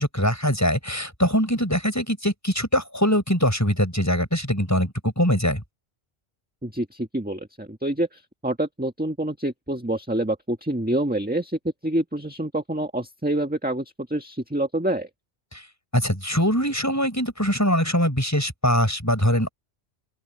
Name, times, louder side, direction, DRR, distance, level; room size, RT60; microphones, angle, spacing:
voice 1, 0.0-5.6 15.5-15.6 15.9-19.5, equal, 15° left, 6.2 m, -22 dB
voice 2, 6.6-15.1, right 1 dB, 10° right, 1.5 m, -27 dB
open air
omnidirectional pair, 1.1 m